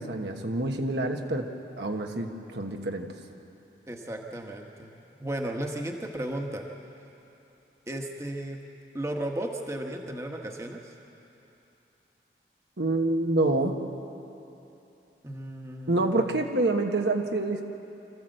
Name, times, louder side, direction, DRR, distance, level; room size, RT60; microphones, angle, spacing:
voice 1, 0.0-1.5 1.8-3.1 12.8-13.7 15.9-17.6, right 2 dB, 80° right, 3 dB, 1.4 m, -27 dB
voice 2, 3.9-4.9 5.2-6.7 7.9-8.6 8.9-10.9 15.2-16.2, right 1 dB, 15° right, 2 dB, 1.2 m, -34 dB
25.5 x 14.0 x 7.8 m, 3.0 s
head